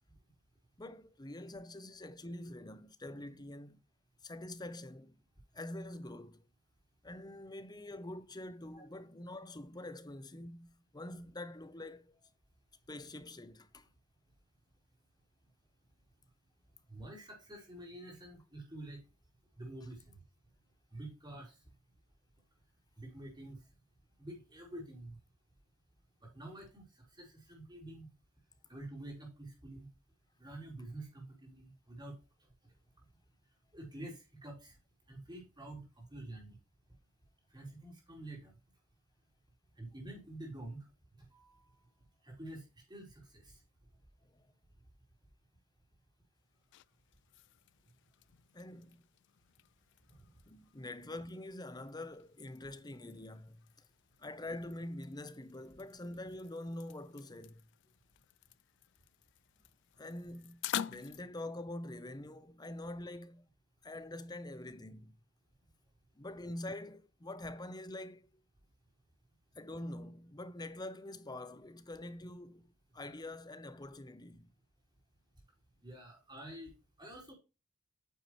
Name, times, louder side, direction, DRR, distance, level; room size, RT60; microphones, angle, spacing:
voice 1, 0.8-3.8 4.2-5.2 5.5-6.5 7.0-12.2 12.9-13.9 44.3-44.4 48.5-49.0 50.5-53.8 54.2-57.6 60.0-63.5 63.8-65.2 66.2-68.3 69.5-74.5, left 1 dB, 20° left, 0.8 m, -45 dB
voice 2, 16.9-19.0 19.6-20.2 20.9-21.5 23.0-23.6 24.2-25.2 26.2-26.9 27.2-28.1 28.7-29.9 30.4-32.2 33.7-34.8 35.1-36.6 37.5-38.5 39.8-40.9 41.3-41.7 42.2-43.6 75.8-76.7 77.0-77.3, right 1 dB, 20° right, 4.2 m, -48 dB
sound 1, 46.4-61.2, left 11 dB, 55° left, 0.3 m, -49 dB
9.3 x 7.3 x 3.1 m
head